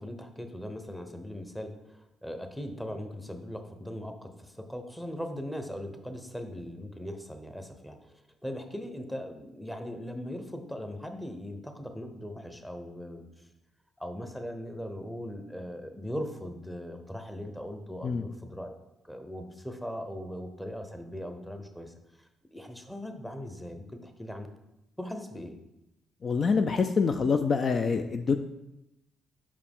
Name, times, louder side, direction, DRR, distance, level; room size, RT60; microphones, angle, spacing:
voice 1, 0.0-8.1 8.4-13.3 14.0-18.8 19.0-21.9 22.5-24.5 25.0-25.6, equal, 5° left, 6 dB, 0.9 m, -39 dB
voice 2, 26.2-28.4, left 5 dB, 50° left, 8 dB, 0.3 m, -26 dB
5.7 x 4.8 x 3.6 m, 0.90 s
supercardioid pair, 65°, 0 cm